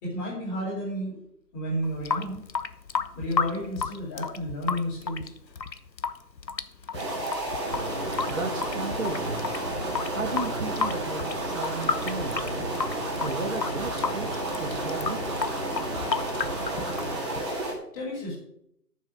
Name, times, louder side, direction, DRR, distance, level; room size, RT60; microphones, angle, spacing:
voice 1, 0.0-1.2 1.5-2.4 3.1-5.3 17.9-18.3, equal, 10° left, -5 dB, 3.9 m, -31 dB
Water tap faucet / Sink (filling or washing) / Drip, 1.8-17.8, left 5 dB, 80° left, 1.2 m, -33 dB
sound 1, 6.9-17.7, right 1 dB, 15° right, 2.3 m, -31 dB
voice 2, 8.3-9.5 10.1-12.5 13.2-15.2, right 3 dB, 50° right, 3 dB, 2.0 m, -34 dB
13.0 x 7.5 x 6.6 m, 0.73 s
figure-of-eight pair, 160°, 50 cm